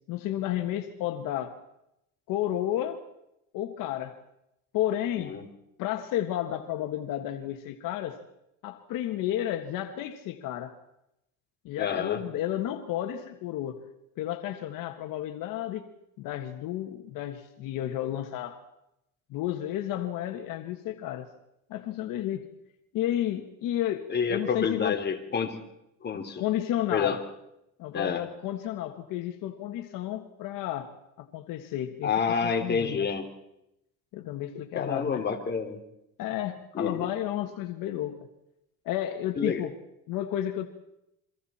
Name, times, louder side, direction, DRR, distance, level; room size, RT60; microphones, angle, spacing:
voice 1, 0.1-1.5 2.3-3.0 3.5-4.1 4.7-5.4 5.8-8.2 8.6-10.7 11.7-13.8 14.2-15.9 16.2-18.6 19.3-21.3 21.7-22.5 22.9-25.0 26.4-27.2 27.8-30.9 31.2-32.1 32.4-33.1 34.1-35.2 36.2-38.2 38.9-39.7 40.1-40.7, left 12 dB, 70° left, 6 dB, 1.7 m, -32 dB
voice 2, 11.8-12.2 24.1-25.6 26.0-26.4 26.9-27.2 27.9-28.2 32.0-33.3 34.7-35.8 36.7-37.1 39.4-39.7, left 6 dB, 30° left, 4 dB, 3.2 m, -28 dB
29.5 x 24.0 x 4.4 m, 0.83 s
cardioid pair, 130°, 34 cm